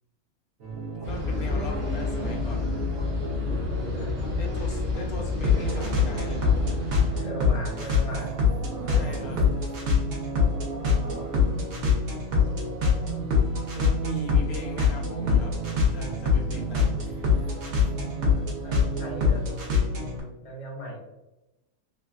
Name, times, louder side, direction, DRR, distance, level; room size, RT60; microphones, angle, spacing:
sound 1, 0.6-20.2, left 4 dB, 60° right, 1.0 m, -26 dB
voice 1, 0.9-2.7 4.4-7.1 8.9-9.4 13.7-15.5 15.9-17.6, left 2 dB, 90° left, 0 dB, 1.2 m, -39 dB
sound 2, 1.0-7.2, left 3 dB, 40° right, 0.5 m, -29 dB
voice 2, 7.1-8.3 9.2-9.5 18.3-19.4 20.4-21.0, equal, 40° left, -1 dB, 0.6 m, -38 dB
sound 3, 7.7-19.7, right 5 dB, 85° right, 1.1 m, -40 dB
3.0 x 2.3 x 2.4 m, 0.96 s
omnidirectional pair, 1.5 m